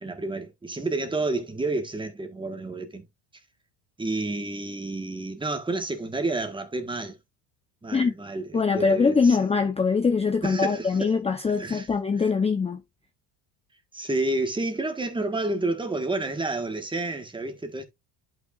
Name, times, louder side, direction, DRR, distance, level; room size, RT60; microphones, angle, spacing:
voice 1, 0.0-3.0 4.0-7.1 7.8-9.4 10.4-11.1 11.5-11.9 12.2-12.3 13.9-17.8, right 2 dB, 10° right, 1.5 m, -30 dB
voice 2, 8.5-12.8, left 5 dB, 15° left, 0.8 m, -23 dB
11.0 x 5.7 x 2.5 m
cardioid pair, 130°, 42 cm